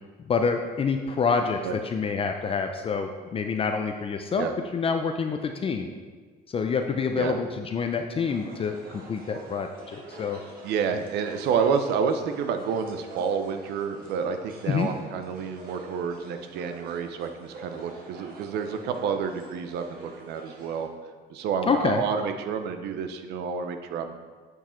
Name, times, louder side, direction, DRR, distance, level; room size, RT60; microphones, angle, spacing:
voice 1, 0.2-4.5 4.7-5.9 6.5-10.4 14.7-14.9 21.7-22.0, left 5 dB, 35° left, 5 dB, 0.5 m, -27 dB
sound 1, 8.3-20.9, right 2 dB, 60° right, 1.5 m, -46 dB
voice 2, 10.6-20.9 21.3-24.1, right 6 dB, 80° right, 8 dB, 0.7 m, -29 dB
8.1 x 4.8 x 4.4 m, 1.5 s
cardioid pair, 110°, 17 cm